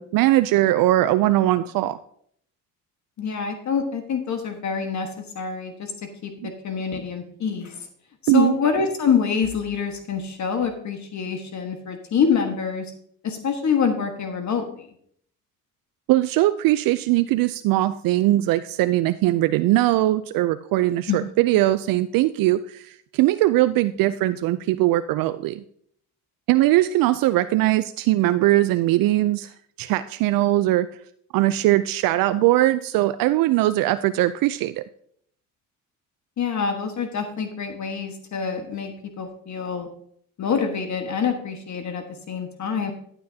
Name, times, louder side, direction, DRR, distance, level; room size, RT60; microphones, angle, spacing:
voice 1, 0.0-2.0 6.4-6.5 8.3-8.5 16.1-25.6 26.5-29.5 29.8-30.9 31.3-34.8, right 16 dB, 65° right, 13 dB, 0.5 m, -20 dB
voice 2, 3.2-5.1 5.3-5.9 6.2-7.9 8.2-12.9 13.2-14.9 21.1-21.2 36.4-39.9 40.4-42.9, left 6 dB, 50° left, 5 dB, 1.5 m, -26 dB
11.0 x 9.0 x 2.8 m, 0.64 s
supercardioid pair, 85°, 37 cm